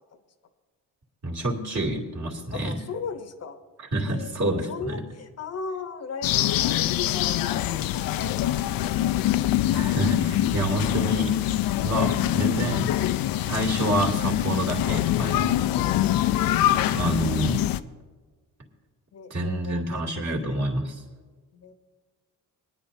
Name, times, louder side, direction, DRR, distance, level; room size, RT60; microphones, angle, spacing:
voice 1, 1.2-2.8 3.8-5.0 9.7-11.3 11.8-12.9 13.4-16.0 16.9-17.6 19.3-21.0, right 1 dB, 45° right, -2 dB, 2.7 m, -28 dB
voice 2, 2.5-3.6 4.1-4.3 4.7-7.5 7.9-9.5 10.5-10.6 19.1-20.1 20.4-20.6 21.5-21.7, left 5 dB, 45° left, 9 dB, 1.0 m, -38 dB
sound 1, 6.2-17.8, left 13 dB, 70° left, 0.5 m, -24 dB
22.5 x 10.0 x 2.8 m, 1.4 s
cardioid pair, 95°, 36 cm